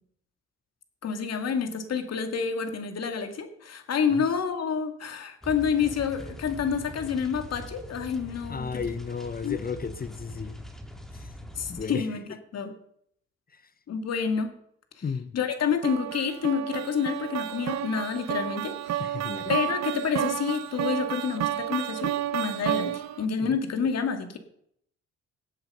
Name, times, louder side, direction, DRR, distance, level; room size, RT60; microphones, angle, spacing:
voice 1, 1.0-8.9 9.4-9.6 11.5-12.7 13.9-14.5 15.3-19.0 19.5-24.4, left 6 dB, 55° left, 2.2 m, -28 dB
sound 1, 5.4-11.9, equal, ahead, 1.9 m, -42 dB
voice 2, 8.5-10.6 11.1-11.3 11.7-12.1 13.5-13.6 15.0-15.4 19.0-19.5 23.4-23.6, left 5 dB, 30° left, 0.9 m, -34 dB
sound 2, 15.8-23.3, right 12 dB, 65° right, 0.9 m, -31 dB
18.0 x 7.7 x 5.5 m
cardioid pair, 90°, 30 cm